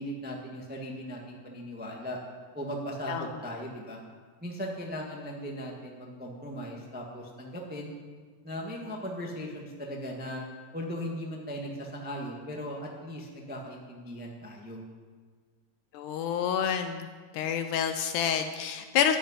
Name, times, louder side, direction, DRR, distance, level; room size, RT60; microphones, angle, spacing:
voice 1, 0.0-2.2 2.5-4.0 4.4-7.9 8.4-10.4 10.7-14.8, equal, 10° right, -1 dB, 0.5 m, -38 dB
voice 2, 15.9-17.1 17.3-19.2, left 8 dB, 75° left, 8 dB, 1.9 m, -28 dB
12.5 x 7.7 x 9.9 m, 1.5 s
omnidirectional pair, 4.0 m